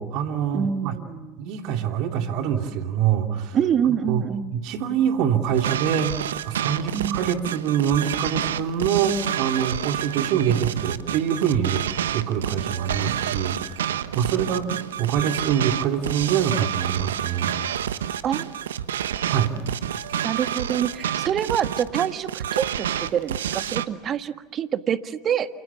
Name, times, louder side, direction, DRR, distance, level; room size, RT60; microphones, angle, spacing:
voice 1, 0.0-1.0 1.4-3.6 4.1-4.2 4.5-6.1 6.4-11.8 12.1-17.5 19.3-19.6, right 8 dB, 60° right, 5 dB, 2.9 m, -25 dB
voice 2, 0.5-1.4 3.5-4.6 6.9-7.3 18.2-18.5 20.2-25.5, right 8 dB, 40° right, 10 dB, 1.6 m, -26 dB
sound 1, 5.5-23.9, right 10 dB, 80° right, 1.2 m, -29 dB
29.0 x 28.0 x 7.2 m, 1.3 s
hypercardioid pair, 80°, 0 cm